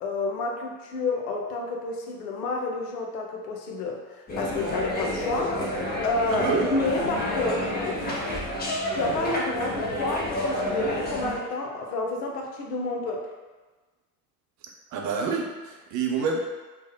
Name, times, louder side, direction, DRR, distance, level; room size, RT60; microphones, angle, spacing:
voice 1, 0.0-5.6 6.0-8.0 8.8-13.2, left 3 dB, 75° left, 1 dB, 0.6 m, -29 dB
sound 1, 4.3-11.3, left 1 dB, 20° left, 0.7 m, -29 dB
voice 2, 6.3-6.7 14.9-16.4, right 5 dB, 40° right, 1 dB, 0.5 m, -27 dB
3.4 x 2.1 x 2.2 m, 1.3 s
hypercardioid pair, 70°, 47 cm